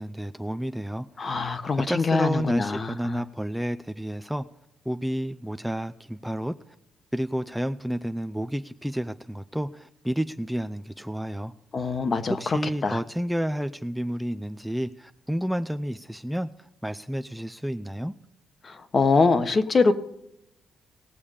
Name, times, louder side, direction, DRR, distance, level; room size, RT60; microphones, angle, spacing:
voice 1, 0.0-1.3 1.9-4.5 4.9-6.5 7.1-11.5 12.3-18.1, equal, ahead, 8 dB, 0.5 m, -30 dB
voice 2, 1.2-3.2 11.7-13.0 18.6-19.9, left 4 dB, 40° left, 9 dB, 1.2 m, -24 dB
19.0 x 7.1 x 5.0 m, 0.84 s
cardioid pair, 90°, 0 cm